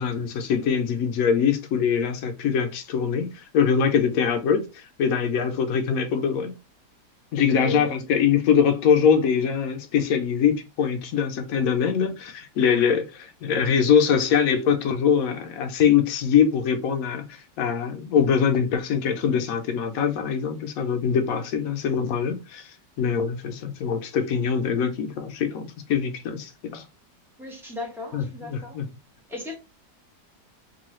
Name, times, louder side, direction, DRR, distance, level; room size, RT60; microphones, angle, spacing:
voice 1, 0.0-6.5 7.3-26.8 28.1-28.9, left 7 dB, 70° left, 0.9 m, -23 dB
voice 2, 7.5-8.0 27.4-28.8 29.3-29.6, left 3 dB, 5° right, 0.5 m, -35 dB
3.0 x 2.3 x 3.0 m
omnidirectional pair, 1.9 m